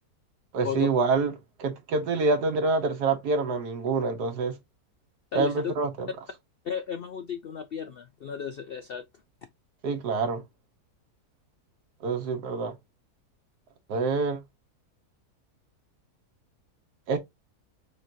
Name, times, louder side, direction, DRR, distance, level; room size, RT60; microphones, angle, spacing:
voice 1, 0.5-1.3 1.6-4.6 5.3-6.1 9.8-10.4 12.0-12.8 13.9-14.4 17.1-17.2, right 4 dB, 85° right, 1.6 m, -26 dB
voice 2, 5.3-5.7 6.6-9.0, left 7 dB, 75° left, 0.5 m, -34 dB
5.2 x 3.8 x 2.6 m
omnidirectional pair, 1.7 m